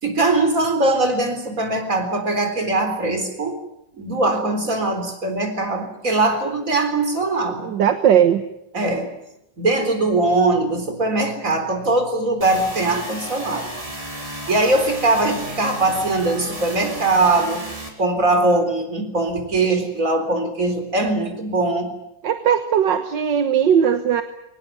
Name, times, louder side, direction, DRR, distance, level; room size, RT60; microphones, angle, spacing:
voice 1, 0.0-3.6 3.9-7.7 8.7-9.1 9.6-13.7 14.5-17.6 18.0-21.9, right 2 dB, 45° right, 7 dB, 4.4 m, -21 dB
voice 2, 7.6-8.5 22.2-24.2, right 8 dB, 85° right, 9 dB, 1.8 m, -18 dB
sound 1, 12.4-17.9, right 1 dB, 20° right, 4.2 m, -33 dB
23.5 x 19.5 x 9.4 m, 0.85 s
omnidirectional pair, 1.9 m